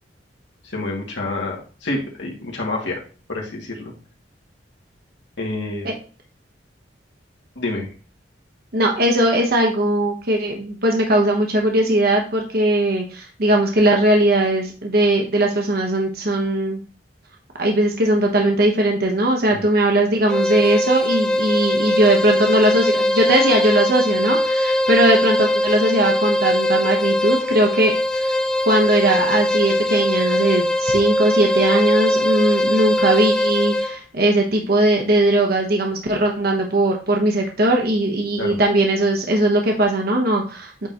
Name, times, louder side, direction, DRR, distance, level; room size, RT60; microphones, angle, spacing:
voice 1, 0.6-1.6 1.8-3.0 3.3-3.9 5.4-5.9 7.6-7.9 19.5-19.6 38.4-38.6, left 2 dB, 80° left, -2 dB, 2.2 m, -27 dB
voice 2, 8.7-16.8 17.6-28.3 28.7-40.9, right 1 dB, 55° right, 1 dB, 1.1 m, -19 dB
sound 1, 20.3-34.0, left 1 dB, 5° left, 0.4 m, -20 dB
8.6 x 3.9 x 2.9 m, 0.37 s
head